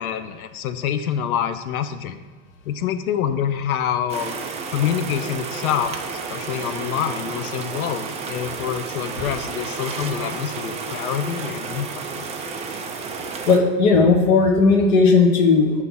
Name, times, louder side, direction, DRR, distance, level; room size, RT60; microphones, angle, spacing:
voice 1, 0.0-2.2 2.7-4.3 4.7-12.3, left 9 dB, 85° left, 9 dB, 0.7 m, -26 dB
sound 1, 4.1-13.6, right 4 dB, 15° right, 0.4 m, -31 dB
voice 2, 13.5-15.8, left 4 dB, 55° left, 2 dB, 1.3 m, -16 dB
6.2 x 3.3 x 5.5 m, 1.3 s
hypercardioid pair, 120°, 43 cm